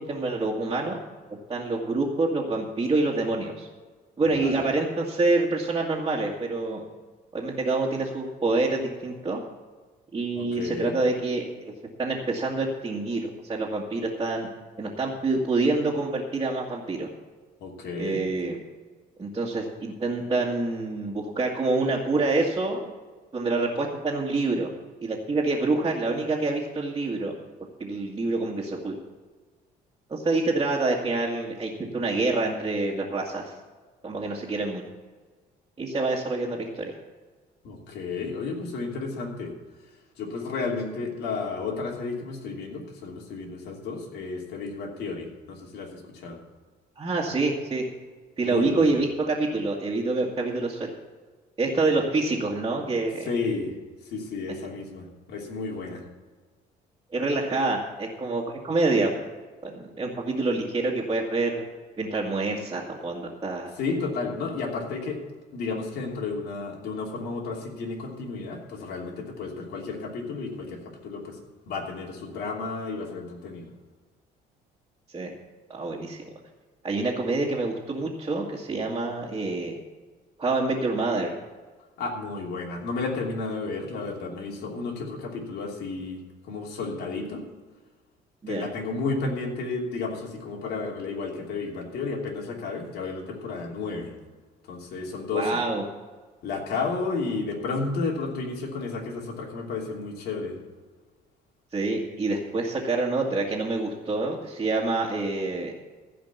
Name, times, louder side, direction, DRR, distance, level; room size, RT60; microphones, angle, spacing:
voice 1, 0.1-1.0 1.5-3.7 4.2-6.8 7.3-9.4 10.1-11.7 12.0-14.5 14.8-17.1 18.0-18.6 19.2-22.9 23.3-24.7 25.0-27.3 27.8-29.0 30.1-33.5 34.0-34.8 35.8-36.9 47.0-47.8 48.4-50.9 51.6-53.3 57.1-59.1 59.6-61.6 62.0-63.7 75.1-75.3 75.7-76.3 76.8-79.7 80.4-81.3 88.4-88.7 95.3-95.8 101.7-105.7, right 3 dB, 25° right, -5 dB, 1.9 m, -27 dB
voice 2, 4.2-4.7 10.3-11.0 17.6-18.2 37.6-39.5 40.2-46.4 48.4-48.9 53.2-53.7 54.0-56.1 63.7-65.2 65.5-71.4 71.7-73.7 82.0-86.2 86.5-87.4 88.5-94.1 94.7-95.6 96.4-100.6, left 4 dB, 75° left, 0 dB, 3.0 m, -32 dB
15.5 x 5.2 x 8.2 m, 1.4 s
cardioid pair, 110°, 17 cm